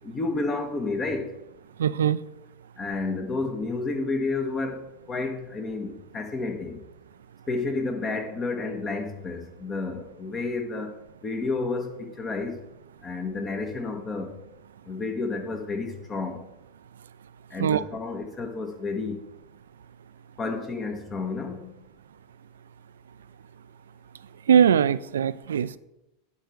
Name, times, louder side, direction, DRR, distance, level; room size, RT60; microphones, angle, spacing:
voice 1, 0.0-1.4 2.8-6.8 7.5-11.0 11.2-12.6 13.0-14.4 14.8-16.5 17.5-19.2 20.4-21.7, left 3 dB, 25° left, 1.7 m, -31 dB
voice 2, 1.8-2.2 17.6-17.8 24.5-25.7, right 8 dB, 85° right, 0.4 m, -21 dB
10.5 x 4.7 x 6.5 m
hypercardioid pair, 100°, 0 cm